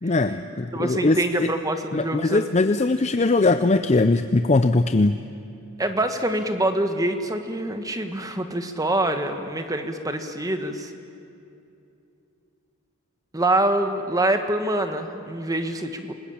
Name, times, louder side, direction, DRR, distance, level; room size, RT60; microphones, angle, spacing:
voice 1, 0.0-1.5 1.9-5.2, left 2 dB, 30° left, 10 dB, 0.5 m, -21 dB
voice 2, 0.7-2.5 5.8-10.9 13.3-16.1, right 1 dB, 15° right, 7 dB, 1.4 m, -25 dB
28.0 x 20.0 x 8.7 m, 2.7 s
head